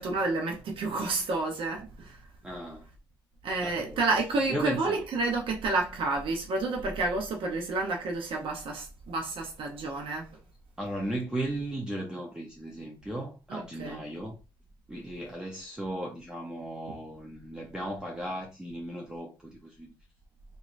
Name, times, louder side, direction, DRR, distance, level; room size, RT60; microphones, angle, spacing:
voice 1, 0.0-2.2 3.4-10.4 13.5-14.0, right 3 dB, 70° right, 0.7 m, -30 dB
voice 2, 2.4-2.9 3.6-4.0 4.5-5.0 10.8-14.4 14.9-19.9, right 1 dB, 10° right, 0.7 m, -36 dB
3.7 x 3.1 x 2.5 m
cardioid pair, 120°, 9 cm